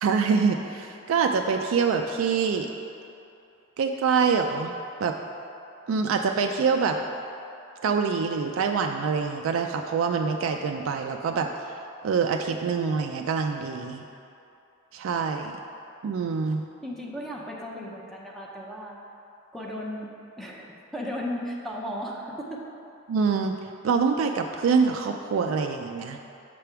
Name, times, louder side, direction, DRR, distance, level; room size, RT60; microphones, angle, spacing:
voice 1, 0.0-2.7 3.8-4.7 5.0-5.1 5.9-7.0 7.8-11.5 12.0-14.0 14.9-15.6 16.0-16.7 23.1-23.5 23.8-26.2, right 5 dB, 75° right, 4 dB, 0.3 m, -25 dB
voice 2, 16.8-19.0 19.5-20.1 20.4-20.7 20.9-22.6, equal, ahead, -3 dB, 0.6 m, -35 dB
6.7 x 3.4 x 5.7 m, 2.7 s
head